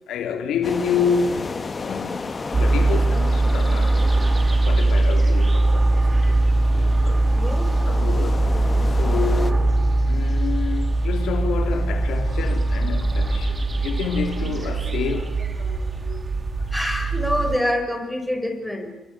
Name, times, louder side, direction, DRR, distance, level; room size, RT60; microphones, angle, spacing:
voice 1, 0.0-7.2 7.9-8.5 9.0-9.8 10.1-16.7, left 6 dB, 80° left, 3.6 m, -29 dB
sound 1, 0.6-9.5, left 4 dB, 30° left, 1.7 m, -34 dB
sound 2, 2.5-17.6, right 2 dB, 30° right, 2.5 m, -21 dB
voice 2, 7.3-7.7 16.7-18.9, left 1 dB, 5° left, 5.9 m, -25 dB
30.0 x 23.0 x 8.4 m
cardioid pair, 90°, 0 cm